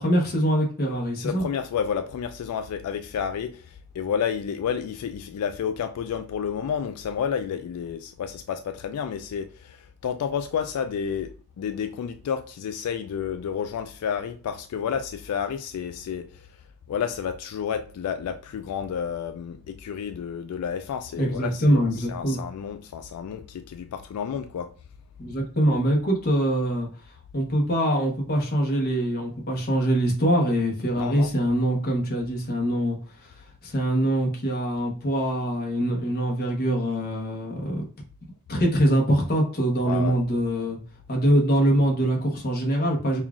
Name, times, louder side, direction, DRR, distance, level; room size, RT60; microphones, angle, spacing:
voice 1, 0.0-1.4 21.2-22.4 25.2-26.9 27.3-33.3 33.6-37.8 38.5-40.8 41.1-43.2, equal, 45° left, 0.9 m, -23 dB
voice 2, 1.2-16.5 16.9-24.7 31.0-31.3 39.9-40.2, left 7 dB, 90° left, 0.3 m, -30 dB
5.5 x 2.3 x 2.4 m
head